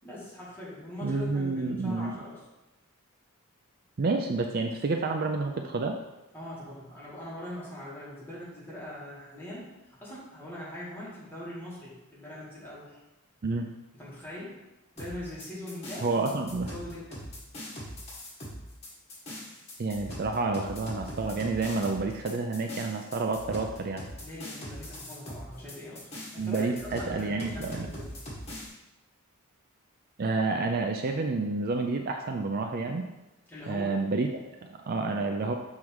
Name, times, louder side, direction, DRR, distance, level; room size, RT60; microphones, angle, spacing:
voice 1, 0.0-2.4 6.3-9.7 10.0-13.0 14.0-14.6 15.0-16.1 16.7-17.2 24.2-28.1 33.5-34.0, left 1 dB, 10° left, -9 dB, 2.3 m, -41 dB
voice 2, 1.0-2.2 4.0-6.0 13.4-13.7 16.0-16.7 19.8-24.0 26.4-27.9 30.2-33.0 33.7-35.5, right 3 dB, 45° right, 4 dB, 0.4 m, -29 dB
sound 1, 15.0-28.7, equal, 30° left, 1.8 m, -41 dB
6.3 x 3.7 x 4.7 m, 0.99 s
head